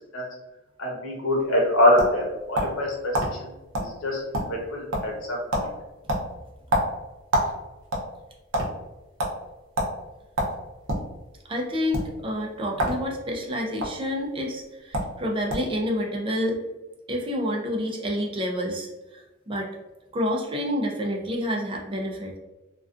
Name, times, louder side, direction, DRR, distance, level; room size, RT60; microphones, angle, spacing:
voice 1, 0.8-3.2 3.8-4.2 4.5-5.7, left 1 dB, 85° left, -2 dB, 0.9 m, -24 dB
sound 1, 1.4-2.8 3.1-3.3 3.7-3.9 4.2-4.7 4.9-5.2 5.5-5.7 6.1-7.5 7.8-8.7 9.2-9.3 9.8-9.9 10.4-11.1 11.8-12.0 12.7-13.0 13.3-13.9 14.6-14.7 14.9-15.1 15.5-15.8, equal, 70° right, 0.6 m, -26 dB
voice 2, 11.5-16.6 17.1-19.7 20.1-22.3, equal, 25° right, 0 dB, 0.4 m, -28 dB
2.3 x 2.3 x 2.4 m, 1.0 s
head